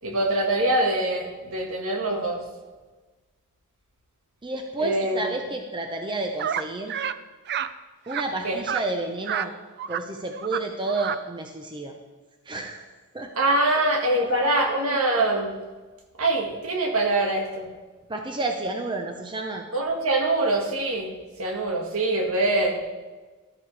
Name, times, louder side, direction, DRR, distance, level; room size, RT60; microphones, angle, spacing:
voice 1, 0.0-2.4 4.8-5.4 8.4-8.6 13.4-15.6 16.2-17.7 19.7-21.1 21.4-22.8, right 2 dB, 65° right, 1 dB, 1.9 m, -24 dB
voice 2, 4.4-7.0 8.1-9.5 9.9-12.0 12.5-12.8 13.1-13.3 14.1-14.4 18.1-19.6, right 2 dB, 20° right, 3 dB, 0.8 m, -30 dB
sound 1, 6.4-6.6 6.9-7.2 7.5-7.7 8.1-8.2 8.7-8.8 9.2-9.5 9.8-10.0 10.3-10.6 10.9-11.2, right 8 dB, 50° right, 0.5 m, -29 dB
13.5 x 12.5 x 3.4 m, 1.3 s
head